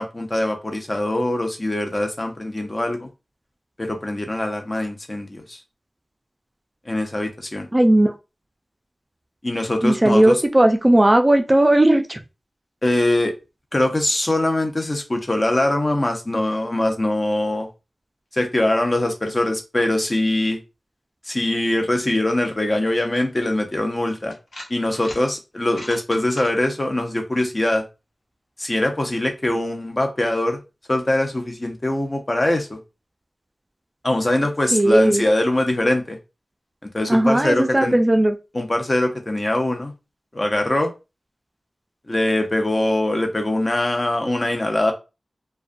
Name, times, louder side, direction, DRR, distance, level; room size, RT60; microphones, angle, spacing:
voice 1, 0.0-3.1 3.8-5.6 6.9-7.7 9.4-10.4 12.8-13.3 13.7-17.7 18.3-20.6 21.3-24.3 24.7-27.9 28.6-30.6 30.9-32.8 34.0-36.2 36.9-38.0 38.5-39.9 40.3-40.9 42.1-44.9, left 1 dB, 40° left, 0.6 m, -22 dB
voice 2, 7.7-8.1 9.8-12.2 34.7-35.2 37.1-38.3, right 1 dB, 30° right, 0.3 m, -16 dB
sound 1, 24.3-25.2 25.6-26.5, left 1 dB, 75° left, 0.7 m, -38 dB
2.3 x 2.2 x 2.5 m
wide cardioid pair, 50°, 0 cm